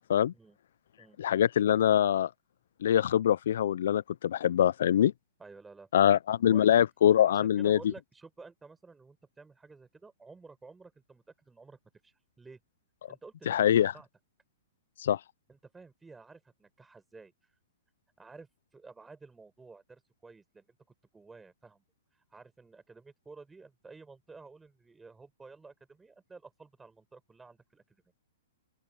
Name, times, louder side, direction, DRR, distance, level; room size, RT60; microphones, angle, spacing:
voice 1, 1.2-2.3 2.8-5.1 5.9-7.8 13.5-13.9 15.0-15.2, left 10 dB, 70° left, 0.3 m, -24 dB
voice 2, 5.4-6.2 6.5-6.7 7.2-12.6 13.1-14.1 15.5-17.3 18.2-20.8 21.1-21.8 22.3-28.0, right 4 dB, 10° right, 5.4 m, -52 dB
open air
hypercardioid pair, 130°, 0 cm